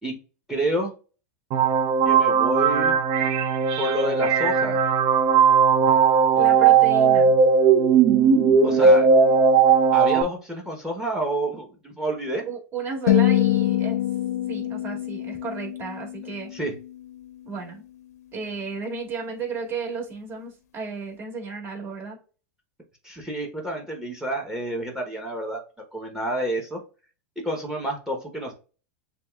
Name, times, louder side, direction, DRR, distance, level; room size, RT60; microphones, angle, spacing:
voice 1, 0.5-0.9 2.0-3.0 3.8-4.8 8.6-9.1 9.9-12.4 16.5-16.7 23.0-25.6 25.9-26.8 27.4-28.5, right 1 dB, 5° right, 2 dB, 1.0 m, -29 dB
sound 1, 1.5-10.2, right 6 dB, 45° right, 0.5 m, -18 dB
voice 2, 6.4-7.3 8.8-9.0 12.4-14.0 14.5-16.5 17.4-17.8 18.3-22.2, right 4 dB, 25° right, -1 dB, 2.1 m, -33 dB
sound 2, 13.1-17.4, left 12 dB, 85° left, 0.7 m, -25 dB
6.7 x 2.4 x 2.3 m, 0.35 s
hypercardioid pair, 125°, 9 cm